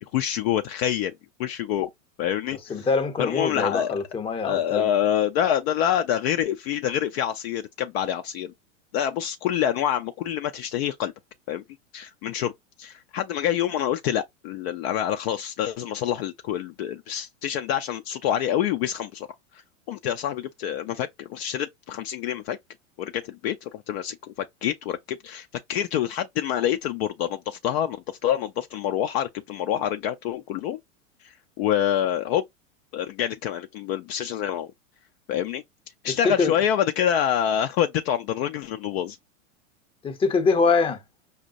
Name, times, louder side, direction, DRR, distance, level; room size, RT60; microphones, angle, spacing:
voice 1, 0.1-1.1 1.4-1.9 2.2-2.9 3.2-4.0 4.4-8.5 8.9-11.1 11.5-11.6 11.9-12.5 12.8-19.3 19.5-19.6 19.9-22.6 23.0-30.8 31.2-32.4 32.9-34.7 35.3-35.6 36.0-39.2, left 10 dB, 50° left, 0.5 m, -26 dB
voice 2, 2.7-4.9 36.2-36.5 40.0-41.0, left 4 dB, 15° left, 0.7 m, -23 dB
5.2 x 2.1 x 2.5 m
hypercardioid pair, 110°, 40 cm